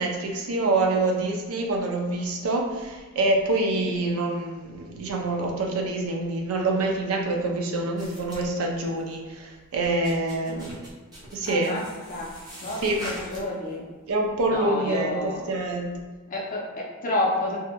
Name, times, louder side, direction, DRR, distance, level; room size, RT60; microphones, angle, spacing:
voice 1, 0.0-10.9 11.3-11.7 12.8-13.1 14.1-16.0, right 2 dB, 80° right, 0 dB, 0.4 m, -26 dB
sound 1, 8.0-9.2 9.6-13.7 14.1-14.6, equal, 20° right, 0.7 m, -42 dB
voice 2, 11.5-11.8 12.1-12.3 12.6-13.8 14.5-15.5 16.3-17.6, left 2 dB, 40° left, -3 dB, 0.5 m, -30 dB
2.7 x 2.5 x 2.2 m, 1.4 s
head